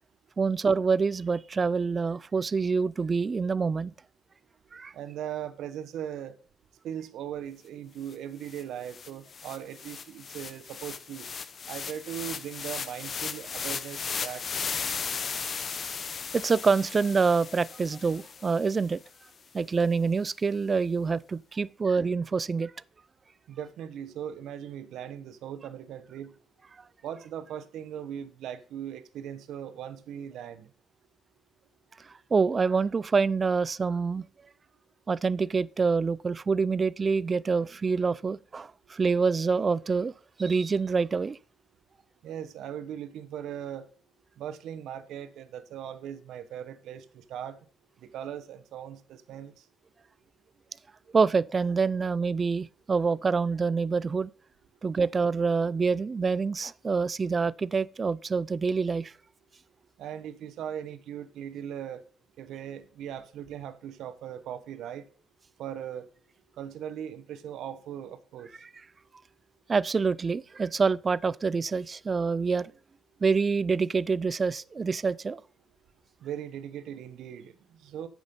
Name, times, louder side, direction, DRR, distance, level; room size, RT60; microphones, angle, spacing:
voice 1, 0.4-3.9 4.7-4.9 16.3-19.0 19.5-22.7 32.3-34.2 35.1-40.1 40.4-41.4 51.1-54.3 54.8-59.1 69.7-72.7 73.2-75.4, right 5 dB, 35° right, 0.3 m, -26 dB
voice 2, 4.9-6.4 6.8-11.3 11.7-14.9 23.5-26.3 27.0-30.7 42.2-43.9 44.4-47.6 48.0-49.5 60.0-62.0 62.4-65.0 65.6-66.1 66.6-68.5 76.2-78.1, right 9 dB, 80° right, 0.9 m, -39 dB
sound 1, 8.1-8.2 8.5-18.8, left 6 dB, 45° left, 0.8 m, -36 dB
8.8 x 6.3 x 5.3 m
cardioid pair, 90°, 0 cm